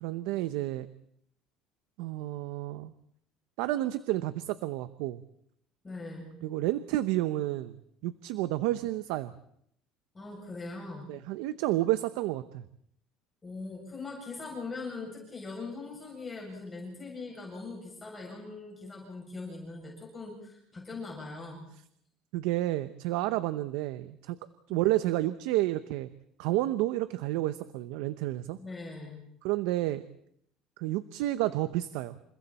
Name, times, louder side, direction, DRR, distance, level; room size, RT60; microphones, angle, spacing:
voice 1, 0.0-0.9 2.0-2.9 3.6-5.2 6.4-7.8 8.0-9.3 11.1-12.6 22.3-24.4 24.7-26.1 26.4-28.6 29.4-30.0 30.8-32.1, right 16 dB, 85° right, 13 dB, 0.9 m, -30 dB
voice 2, 5.8-6.4 10.1-11.1 13.4-21.7 24.7-24.9 28.6-29.2, left 3 dB, 20° left, -2 dB, 7.7 m, -41 dB
29.0 x 28.0 x 4.4 m, 0.70 s
cardioid pair, 135°, 0 cm